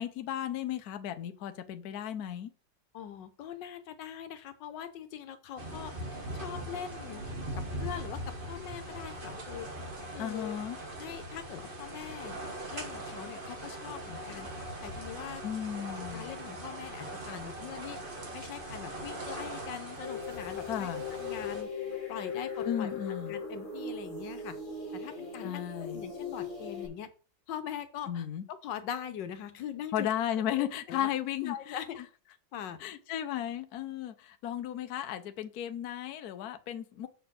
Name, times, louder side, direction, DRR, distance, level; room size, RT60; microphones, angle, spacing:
voice 1, 0.0-2.5 10.2-10.8 15.4-16.3 20.7-21.0 22.6-23.3 25.4-26.0 28.1-28.4 29.9-32.0 32.8-37.1, left 10 dB, 65° left, 9 dB, 1.2 m, -35 dB
voice 2, 2.9-5.9 6.3-7.3 7.5-9.7 10.1-10.6 11.0-12.4 12.7-14.5 14.8-15.4 15.9-18.0 18.3-21.7 22.1-24.6 24.9-27.1 27.5-30.1 30.5-31.1 31.4-32.0 32.5-32.8, left 9 dB, 90° left, 10 dB, 1.5 m, -42 dB
sound 1, 5.6-21.6, right 1 dB, 30° right, 1.5 m, -41 dB
sound 2, 20.0-26.9, left 5 dB, 30° left, 1.8 m, -38 dB
6.6 x 4.6 x 6.3 m, 0.38 s
omnidirectional pair, 1.9 m